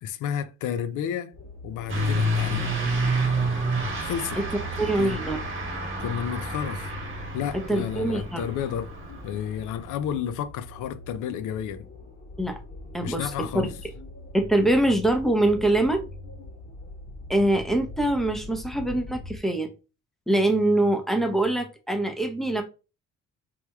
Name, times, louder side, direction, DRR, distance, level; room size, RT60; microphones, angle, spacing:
voice 1, 0.0-1.3 1.6-2.7 4.0-4.4 5.0-5.2 6.0-6.9 7.3-8.9 9.2-11.9 13.0-13.7, left 9 dB, 80° left, 0.4 m, -31 dB
sound 1, 1.3-19.4, left 2 dB, 60° left, 1.5 m, -43 dB
Truck / Accelerating revving vroom, 1.9-9.9, right 1 dB, 40° right, 1.2 m, -29 dB
voice 2, 4.8-5.4 7.7-8.5 12.4-12.6 12.9-13.3 14.3-16.0 17.3-19.7 20.3-22.6, right 1 dB, ahead, 0.6 m, -23 dB
3.2 x 3.1 x 2.2 m
cardioid pair, 90°, 30 cm